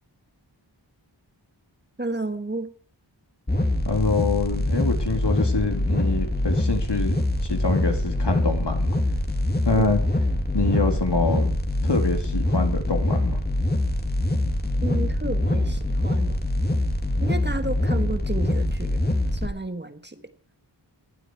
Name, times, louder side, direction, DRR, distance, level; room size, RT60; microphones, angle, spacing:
voice 1, 2.0-2.7 9.8-9.9 14.8-16.4 17.2-19.0 19.3-20.3, right 2 dB, 25° right, 9 dB, 1.5 m, -32 dB
sound 1, 3.5-19.5, left 1 dB, 20° left, 2.7 m, -24 dB
voice 2, 3.8-9.0 9.6-10.0 10.5-11.5 11.8-13.4, left 3 dB, 65° left, 4 dB, 3.3 m, -25 dB
18.5 x 12.0 x 4.7 m, 0.43 s
wide cardioid pair, 55°, 45 cm